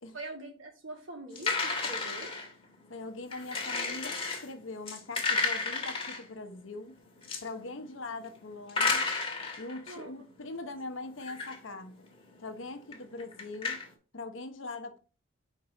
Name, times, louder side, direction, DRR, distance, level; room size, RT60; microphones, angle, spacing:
voice 1, 0.1-2.3 7.7-7.9 9.9-10.1, right 2 dB, 70° right, 2.5 m, -43 dB
sound 1, 1.3-2.5 3.3-4.5 4.9-6.2 7.2-7.4 8.7-10.0 11.2-11.6 12.0-12.1 12.9-13.9, left 4 dB, 30° left, 1.5 m, -32 dB
voice 2, 2.9-7.0 7.4-9.1 9.6-12.0 12.4-13.8 14.1-15.0, left 2 dB, 70° left, 1.0 m, -42 dB
5.4 x 4.6 x 4.1 m
head